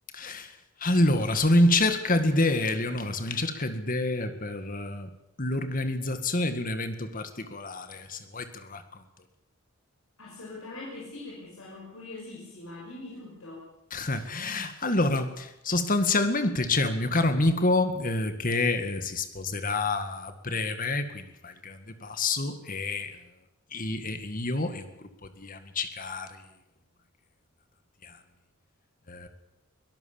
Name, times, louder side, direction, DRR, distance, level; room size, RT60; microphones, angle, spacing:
voice 1, 0.1-0.5 0.8-5.1 5.4-8.8 13.9-23.2 23.7-25.1 25.4-26.3 28.0-28.2 29.1-29.3, left 2 dB, 40° left, 9 dB, 2.0 m, -27 dB
voice 2, 10.2-13.6, left 2 dB, 75° left, -4 dB, 6.0 m, -42 dB
23.5 x 17.5 x 7.2 m, 0.89 s
head